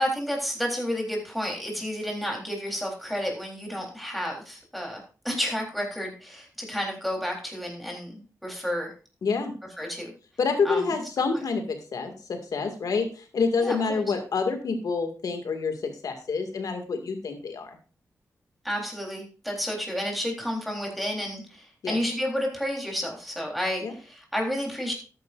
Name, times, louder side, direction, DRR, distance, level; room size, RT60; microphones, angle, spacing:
voice 1, 0.0-8.9 9.8-10.1 10.6-10.8 13.6-14.0 18.6-24.9, equal, ahead, -1 dB, 3.8 m, -31 dB
voice 2, 9.2-9.5 10.4-17.8 21.8-22.0 23.8-23.9, left 4 dB, 80° left, 6 dB, 2.2 m, -27 dB
13.5 x 10.5 x 2.6 m, 0.35 s
wide cardioid pair, 90°, 6 cm